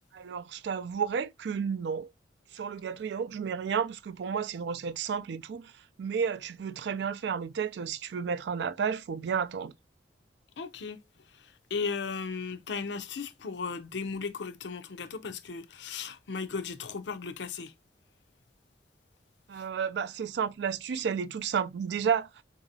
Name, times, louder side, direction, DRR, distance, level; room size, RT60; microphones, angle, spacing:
voice 1, 0.1-2.1 2.5-5.7 6.0-9.7 19.5-22.4, right 6 dB, 70° right, 0.3 m, -32 dB
voice 2, 10.6-11.0 11.3-17.7, left 5 dB, 70° left, 0.5 m, -36 dB
3.9 x 2.7 x 2.6 m
head